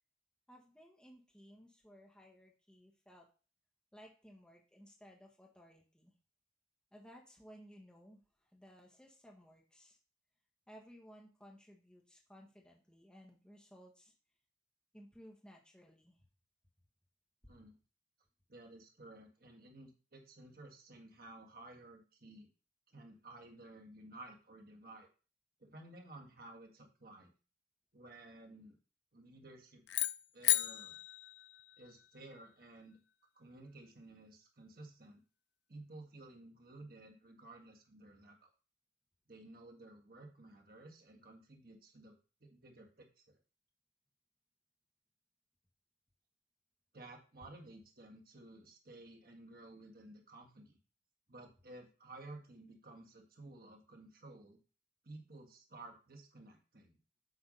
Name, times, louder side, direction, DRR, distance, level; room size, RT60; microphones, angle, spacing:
voice 1, 0.5-3.3 3.9-6.1 6.9-10.0 10.7-14.1 14.9-16.3 17.4-17.6, equal, 5° left, -1 dB, 1.1 m, -59 dB
voice 2, 18.5-22.5 22.9-25.1 25.6-27.3 27.9-28.8 29.1-29.8 30.3-31.0 31.8-33.0 33.3-35.2 35.7-38.5 39.3-42.1 42.4-43.4 46.9-50.8 51.3-54.6 55.0-57.0, right 2 dB, 55° right, 2 dB, 1.7 m, -54 dB
sound 1, 29.9-32.2, left 14 dB, 70° left, 0.4 m, -35 dB
8.1 x 3.5 x 5.3 m, 0.35 s
head